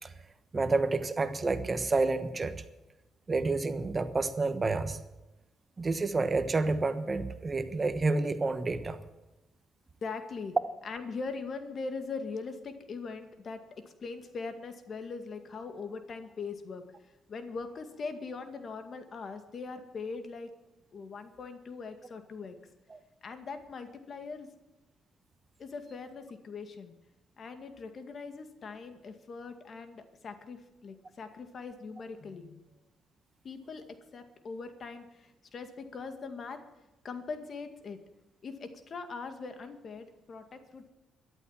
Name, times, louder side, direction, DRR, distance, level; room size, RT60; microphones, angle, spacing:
voice 1, 0.5-2.5 3.3-5.0 5.8-9.0 22.9-23.0, right 3 dB, 30° right, 10 dB, 1.3 m, -29 dB
voice 2, 10.0-10.6 10.8-16.8 17.3-20.5 20.9-22.6 23.2-24.5 25.6-26.9 27.4-32.6 33.4-36.6 37.0-38.0 38.4-40.9, left 4 dB, 50° left, 8 dB, 2.0 m, -41 dB
13.5 x 11.5 x 7.4 m, 1.0 s
cardioid pair, 90°, 0 cm